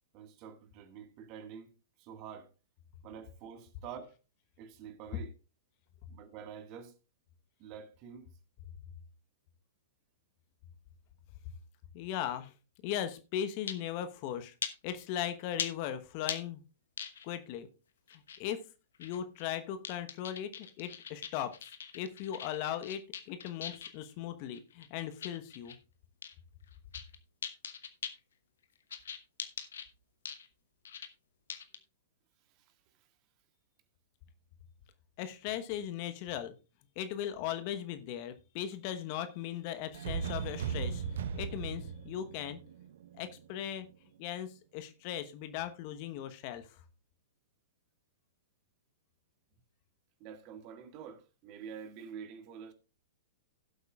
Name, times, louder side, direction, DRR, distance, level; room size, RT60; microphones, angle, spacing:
voice 1, 0.1-1.7 2.0-2.5 3.0-4.1 4.6-5.3 6.1-6.9 7.6-8.3 32.5-33.1 50.2-52.7, right 7 dB, 40° right, 1.7 m, -47 dB
voice 2, 11.9-12.5 12.8-14.5 14.8-16.6 17.2-17.7 18.1-18.6 19.0-25.8 35.2-36.5 37.0-42.6 43.2-43.9 44.2-46.7, left 10 dB, 45° left, 1.0 m, -38 dB
sound 1, 13.7-13.9 14.6-14.7 15.6-15.7 16.3-16.4 17.0-17.4 18.1-18.4 18.9-19.6 19.8-24.0 24.5-25.8 26.2-26.3 26.7-27.1 27.4-28.2 28.9-29.8 30.2-30.5 30.8-31.1 31.5-31.8, left 7 dB, 65° left, 1.1 m, -41 dB
sound 2, 39.9-43.8, right 6 dB, 60° right, 0.8 m, -38 dB
16.5 x 7.9 x 2.4 m
figure-of-eight pair, 105°, 0 cm